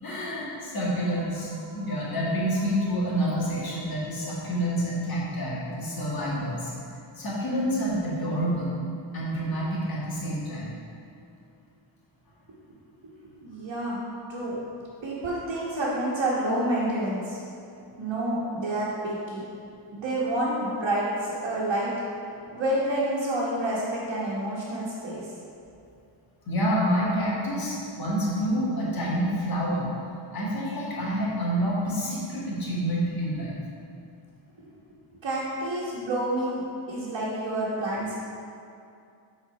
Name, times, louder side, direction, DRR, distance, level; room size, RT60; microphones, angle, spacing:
voice 1, 0.0-6.7 7.2-8.8 9.1-10.7 26.5-29.9 30.3-33.6, equal, 50° left, -6 dB, 1.8 m, -28 dB
voice 2, 13.4-14.0 14.3-14.5 15.0-17.4 18.0-19.4 19.9-21.9 22.5-25.3 35.2-38.2, right 1 dB, 70° right, -9 dB, 1.3 m, -28 dB
7.8 x 4.1 x 4.9 m, 2.5 s
wide cardioid pair, 175°, 45 cm